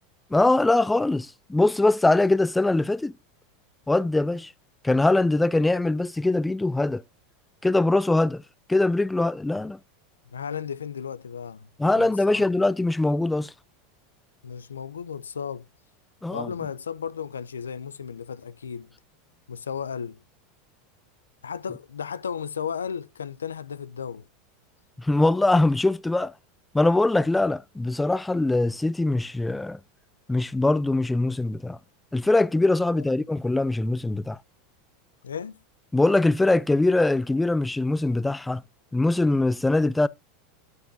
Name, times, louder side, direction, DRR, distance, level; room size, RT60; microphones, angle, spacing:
voice 1, 0.3-3.1 3.9-4.5 4.8-7.0 7.6-8.4 8.7-9.8 11.8-13.5 16.2-16.5 25.0-26.3 26.7-29.8 30.3-31.8 32.1-34.4 35.9-38.6 38.9-40.1, left 2 dB, 10° left, 0.4 m, -22 dB
voice 2, 10.3-12.4 14.4-15.7 16.3-18.9 19.5-20.2 21.4-24.3 35.2-35.6, left 7 dB, 90° left, 0.5 m, -34 dB
9.5 x 9.2 x 2.6 m
hypercardioid pair, 90°, 0 cm